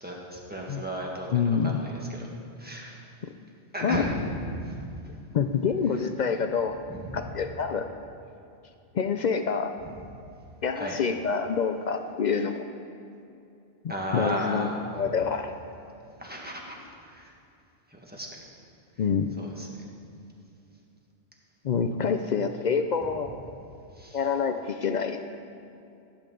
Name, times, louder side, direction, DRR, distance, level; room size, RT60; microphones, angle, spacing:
voice 1, 0.0-2.2 2.6-3.0 3.7-4.8 6.9-7.2 10.8-11.0 13.9-14.8 16.2-16.7 17.1-17.3 17.9-18.3 19.4-19.7 24.0-24.2, equal, 10° right, -2 dB, 1.5 m, -34 dB
voice 2, 1.3-1.8 3.8-4.0 5.3-6.8 7.1-7.9 8.9-9.7 10.6-12.6 14.1-15.5 19.0-19.3 21.6-23.3 24.1-25.2, left 6 dB, 60° left, 7 dB, 0.4 m, -27 dB
15.5 x 8.7 x 3.9 m, 2.6 s
omnidirectional pair, 1.2 m